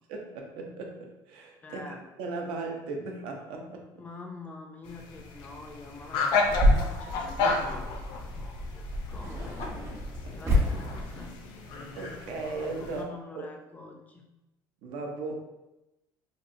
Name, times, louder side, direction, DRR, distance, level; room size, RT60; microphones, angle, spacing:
voice 1, 0.1-3.9 10.2-10.5 11.9-13.5 14.8-15.4, right 3 dB, 80° right, 2 dB, 0.6 m, -37 dB
voice 2, 1.6-2.0 4.0-9.7 10.3-11.4 12.8-14.2, left 3 dB, 20° left, 3 dB, 0.3 m, -46 dB
sound 1, 4.9-13.0, left 4 dB, 75° left, 0.5 m, -33 dB
sound 2, 6.5-11.3, left 1 dB, 30° right, 0.8 m, -29 dB
3.0 x 2.7 x 2.5 m, 0.95 s
cardioid pair, 140°, 8 cm